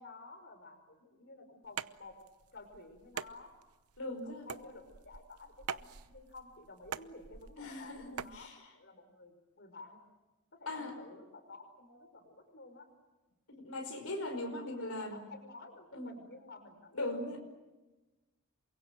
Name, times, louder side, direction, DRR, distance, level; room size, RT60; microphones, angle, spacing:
voice 1, 0.0-2.1 2.5-3.5 4.2-10.0 10.5-12.9 14.6-17.3, left 3 dB, 50° left, 7 dB, 5.4 m, -52 dB
sound 1, 1.6-8.4, right 7 dB, 80° right, 0.9 m, -45 dB
voice 2, 4.0-4.5 7.6-8.7 10.7-10.9 13.5-15.2 15.9-16.1 16.9-17.4, left 2 dB, 70° left, 5 dB, 5.2 m, -40 dB
29.0 x 24.0 x 7.8 m, 1.1 s
head